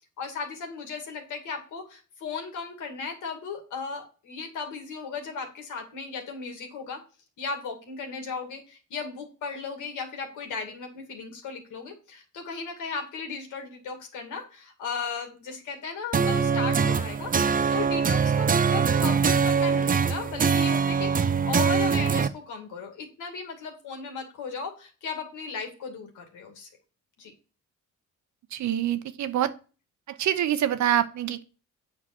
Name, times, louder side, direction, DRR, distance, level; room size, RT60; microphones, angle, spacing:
voice 1, 0.2-7.0 7.4-17.3 17.7-21.1 21.5-26.7 27.2-27.3, left 5 dB, 80° left, 2.4 m, -36 dB
sound 1, 16.1-22.3, right 6 dB, 30° right, 0.6 m, -23 dB
voice 2, 28.5-29.5 30.1-31.4, right 11 dB, 70° right, 0.9 m, -25 dB
8.6 x 4.6 x 6.1 m
cardioid pair, 90°, 30 cm